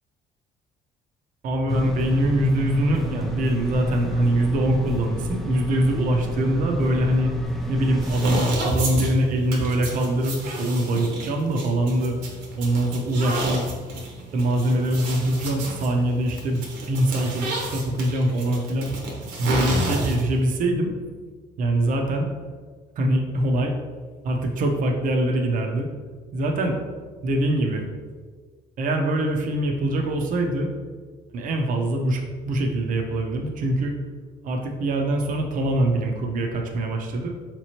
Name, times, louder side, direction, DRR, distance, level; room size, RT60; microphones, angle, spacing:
voice 1, 1.4-7.3 7.7-12.2 12.6-13.6 13.9-14.0 14.3-16.6 16.9-19.0 19.4-20.9 21.6-22.3 23.0-23.7 24.2-25.9 26.3-26.8 27.2-27.9 28.8-30.7 31.3-33.9 34.4-37.3, right 1 dB, 50° right, 3 dB, 0.5 m, -23 dB
sound 1, 1.7-8.3, equal, ahead, 0.4 m, -29 dB
sound 2, 8.0-20.4, right 2 dB, 75° right, 0.9 m, -31 dB
4.0 x 3.0 x 2.8 m, 1.5 s
cardioid pair, 110°, 17 cm